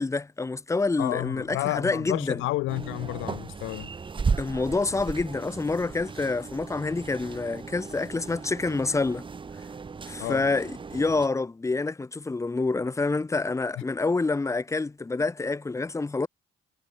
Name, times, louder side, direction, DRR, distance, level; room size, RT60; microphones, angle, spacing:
voice 1, 0.0-2.4 4.4-9.2 10.1-16.3, left 3 dB, 15° left, 0.8 m, -27 dB
voice 2, 1.0-3.9 10.2-10.5, left 18 dB, 90° left, 0.4 m, -30 dB
sound 1, 2.7-11.3, right 5 dB, 25° right, 0.7 m, -35 dB
cardioid pair, 90°, 20 cm